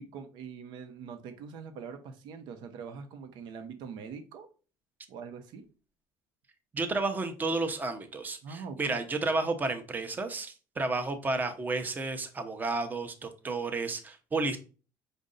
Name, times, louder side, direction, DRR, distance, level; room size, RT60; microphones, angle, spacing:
voice 1, 0.0-4.5 5.1-5.7 8.4-9.0, right 6 dB, 65° right, 8 dB, 0.8 m, -43 dB
voice 2, 6.7-14.6, right 3 dB, 20° right, 7 dB, 0.8 m, -32 dB
5.3 x 2.6 x 3.8 m, 0.35 s
cardioid pair, 120°, 8 cm